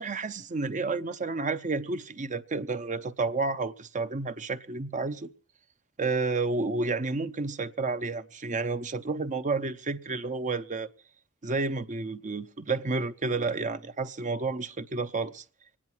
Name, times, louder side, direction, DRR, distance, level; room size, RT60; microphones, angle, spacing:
voice 1, 0.0-5.3 6.0-10.9 11.4-15.4, right 3 dB, 35° right, 0.7 m, -30 dB
25.0 x 9.9 x 4.5 m
head